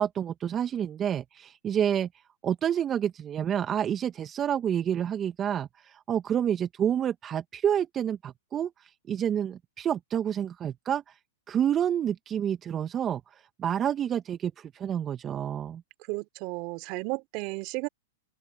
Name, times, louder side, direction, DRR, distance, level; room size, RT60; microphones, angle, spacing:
voice 1, 0.0-2.1 2.4-11.2 11.5-15.8, right 9 dB, 25° right, 1.6 m, -29 dB
voice 2, 16.1-17.9, right 27 dB, 45° right, 3.2 m, -33 dB
open air
hypercardioid pair, 115°, 0 cm